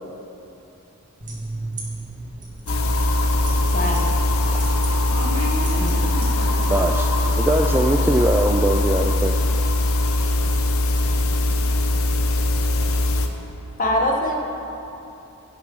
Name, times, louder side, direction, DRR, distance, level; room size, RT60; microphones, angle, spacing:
sound 1, 1.2-6.7, right 2 dB, 35° right, 2.0 m, -36 dB
sound 2, 2.7-13.3, left 2 dB, 70° left, 0.9 m, -21 dB
voice 1, 3.7-4.1 5.8-6.2 13.8-14.4, left 1 dB, 40° left, 0 dB, 1.3 m, -23 dB
voice 2, 5.1-6.8, equal, 80° right, -2 dB, 2.0 m, -33 dB
voice 3, 6.7-9.4, right 1 dB, 10° right, 3 dB, 0.3 m, -22 dB
16.0 x 6.2 x 5.4 m, 2.9 s
head